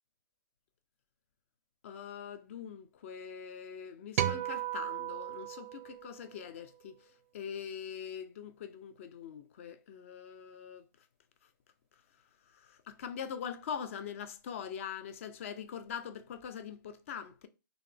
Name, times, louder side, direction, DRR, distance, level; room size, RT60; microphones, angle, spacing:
voice 1, 1.8-6.9 7.3-10.8 12.5-17.5, left 8 dB, 40° left, 0.4 m, -43 dB
sound 1, 4.2-6.6, right 12 dB, 40° right, 0.4 m, -35 dB
3.9 x 2.8 x 3.3 m
hypercardioid pair, 160°, 11 cm